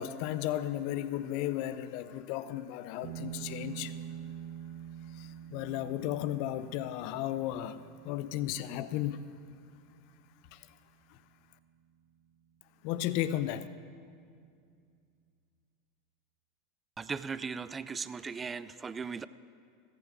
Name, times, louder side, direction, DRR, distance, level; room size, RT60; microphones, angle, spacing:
voice 1, 0.0-3.9 5.1-9.3 10.5-10.8 11.1-11.2 12.8-13.7, left 12 dB, 55° left, 0.7 m, -34 dB
sound 1, 3.0-12.0, right 10 dB, 55° right, 1.9 m, -47 dB
voice 2, 17.0-19.3, right 5 dB, 20° right, 0.5 m, -38 dB
14.5 x 14.0 x 5.0 m
figure-of-eight pair, 80°, 0 cm